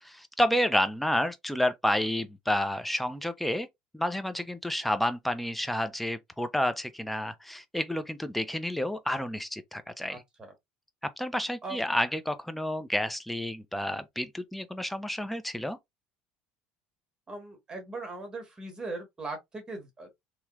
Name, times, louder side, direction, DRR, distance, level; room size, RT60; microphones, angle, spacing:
voice 1, 0.0-3.7 3.9-10.2 11.0-15.8, left 1 dB, 5° left, 0.5 m, -30 dB
voice 2, 10.1-10.5 11.6-11.8 17.3-20.1, right 3 dB, 25° right, 1.2 m, -39 dB
3.2 x 2.9 x 2.3 m
supercardioid pair, 100°, 3 cm